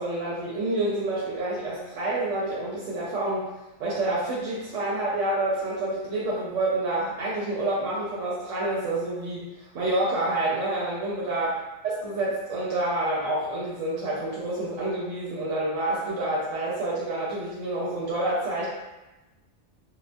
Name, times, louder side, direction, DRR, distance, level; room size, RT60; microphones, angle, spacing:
voice 1, 0.0-3.5 3.8-9.5 9.7-11.5 11.8-18.7, right 2 dB, 85° right, -7 dB, 0.9 m, -28 dB
2.4 x 2.2 x 2.5 m, 1.0 s
omnidirectional pair, 1.2 m